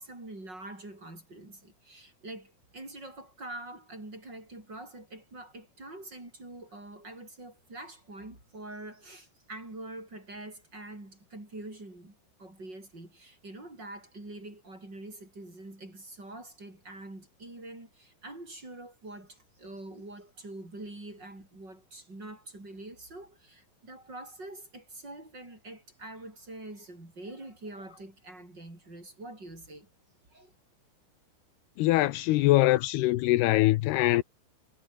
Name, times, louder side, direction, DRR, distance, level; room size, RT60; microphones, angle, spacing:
voice 1, 0.0-29.9 30.3-30.5, right 2 dB, 25° right, 8.5 m, -45 dB
voice 2, 31.8-34.2, left 17 dB, 80° left, 2.8 m, -23 dB
omnidirectional pair, 4.7 m